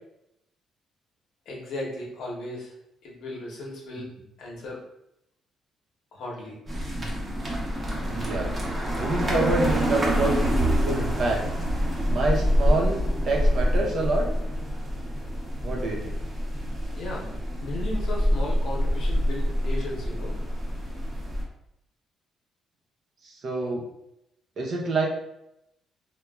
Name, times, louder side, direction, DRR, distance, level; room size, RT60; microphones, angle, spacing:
voice 1, 1.5-2.7 3.0-4.1 4.4-4.9 6.1-6.6 16.9-17.3 17.6-20.3, left 1 dB, 75° left, -3 dB, 0.8 m, -36 dB
sound 1, 6.7-21.4, equal, 30° right, 0.7 m, -26 dB
voice 2, 8.1-8.5 9.0-11.4 12.1-14.3 15.6-16.1 23.2-23.8 24.6-25.1, right 2 dB, 60° right, -1 dB, 0.6 m, -27 dB
2.9 x 2.2 x 2.3 m, 0.82 s
cardioid pair, 90°, 0 cm